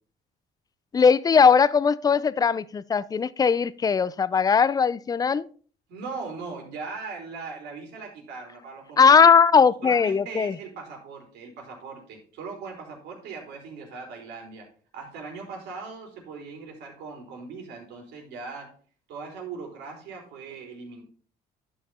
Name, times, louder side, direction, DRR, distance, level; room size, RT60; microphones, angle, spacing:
voice 1, 0.9-5.4 9.0-10.5, left 6 dB, 20° left, 0.5 m, -19 dB
voice 2, 5.9-9.2 9.5-14.7 14.9-18.7 19.1-21.0, right 4 dB, 85° right, 3.9 m, -39 dB
11.0 x 5.8 x 4.2 m
cardioid pair, 110°, 17 cm